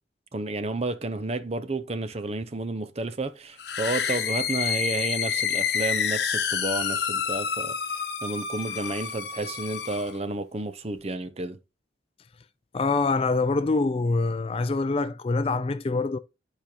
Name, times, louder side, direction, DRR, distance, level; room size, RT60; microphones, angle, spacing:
voice 1, 0.3-7.8 8.2-11.6, right 2 dB, 35° right, 0.6 m, -31 dB
sound 1, 3.6-10.2, left 7 dB, 60° left, 0.9 m, -28 dB
voice 2, 12.7-16.2, left 3 dB, 30° left, 0.4 m, -25 dB
10.5 x 5.1 x 2.8 m
head